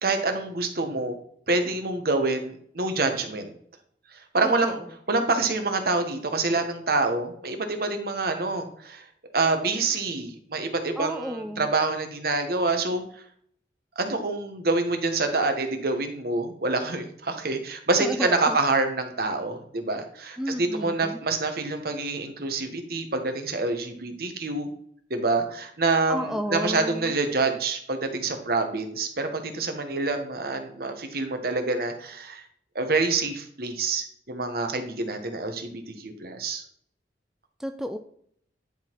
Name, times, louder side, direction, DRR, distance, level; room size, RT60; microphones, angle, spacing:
voice 1, 0.0-1.2 1.5-3.5 4.3-4.8 5.1-9.0 9.3-13.0 14.0-24.7 25.1-32.4 32.7-36.6, right 3 dB, 60° right, 6 dB, 1.1 m, -26 dB
voice 2, 11.0-11.7 18.0-18.6 20.4-21.2 26.1-27.1 37.6-38.0, equal, 5° right, 6 dB, 0.3 m, -32 dB
10.5 x 3.9 x 4.5 m, 0.64 s
head